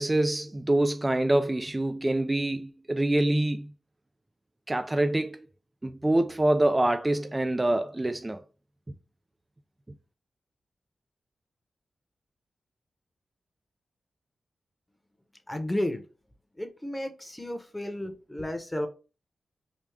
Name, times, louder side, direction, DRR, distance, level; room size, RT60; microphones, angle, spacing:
voice 1, 0.0-3.7 4.7-5.4 5.8-8.4, right 1 dB, 25° right, 0.3 m, -25 dB
voice 2, 15.5-16.0 16.6-18.9, left 1 dB, 10° left, 0.8 m, -32 dB
3.5 x 2.3 x 3.3 m
cardioid pair, 50°, 0 cm